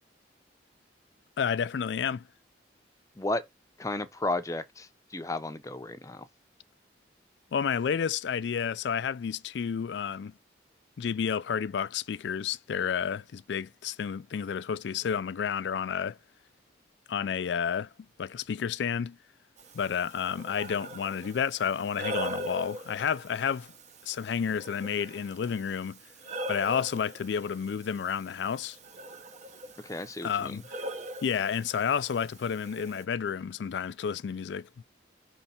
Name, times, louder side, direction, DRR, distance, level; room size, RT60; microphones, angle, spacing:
voice 1, 1.4-2.2 7.5-10.3 11.0-16.2 17.1-17.9 18.2-19.2 19.7-23.7 24.0-26.0 26.5-28.8 30.2-30.6 31.2-34.8, left 7 dB, 70° left, 0.3 m, -30 dB
voice 2, 3.8-6.3 29.8-30.6, left 2 dB, 15° left, 0.6 m, -33 dB
Breathing, 19.6-33.0, right 1 dB, 40° right, 0.7 m, -42 dB
5.4 x 3.2 x 5.7 m
head